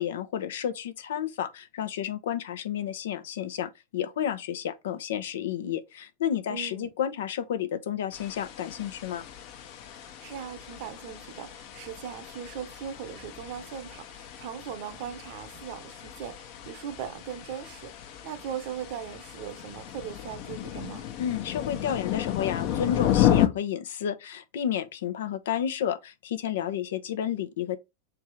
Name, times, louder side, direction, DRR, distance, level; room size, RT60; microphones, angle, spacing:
voice 1, 0.0-9.2 21.2-27.8, left 9 dB, 80° left, 0.8 m, -31 dB
voice 2, 6.5-6.9 10.0-21.1, right 9 dB, 60° right, 0.9 m, -39 dB
sound 1, 8.1-23.5, left 11 dB, 55° left, 1.0 m, -32 dB
3.6 x 3.2 x 4.7 m
hypercardioid pair, 120°, 0 cm